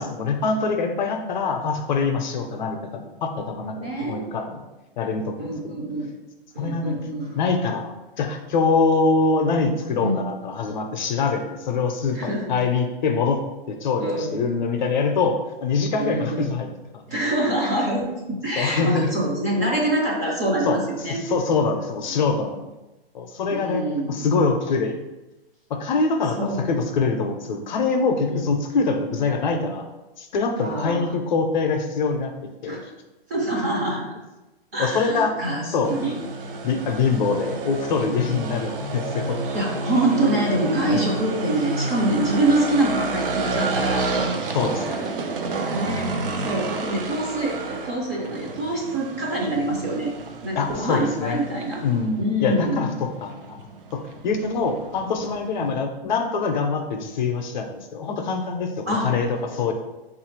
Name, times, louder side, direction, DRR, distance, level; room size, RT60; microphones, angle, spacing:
voice 1, 0.0-4.6 5.0-5.7 6.6-7.1 7.3-13.4 13.7-17.0 18.6-19.1 20.7-20.8 21.1-22.7 23.1-23.8 24.1-25.0 25.7-29.9 30.2-32.3 32.6-32.8 34.8-35.4 35.7-35.9 36.6-39.4 40.9-41.1 44.5-45.0 50.5-51.4 51.8-53.7 53.9-59.7, left 4 dB, 50° left, 5 dB, 0.5 m, -24 dB
voice 2, 3.8-4.2 5.4-6.1 6.5-7.4 10.0-10.2 12.0-12.6 14.0-14.4 16.0-16.5 17.1-21.2 23.5-24.1 26.3-26.7 28.3-28.4 30.6-31.1 32.7-32.9 33.3-34.1 34.7-36.1 39.5-44.1 45.7-46.1 46.4-50.1 50.4-51.8 52.2-52.9 55.6-55.7 58.9-59.1, right 1 dB, 20° right, -4 dB, 0.4 m, -25 dB
sound 1, 35.8-55.7, right 3 dB, 65° right, 0.6 m, -30 dB
3.4 x 2.4 x 4.4 m, 1.1 s
hypercardioid pair, 165°, 29 cm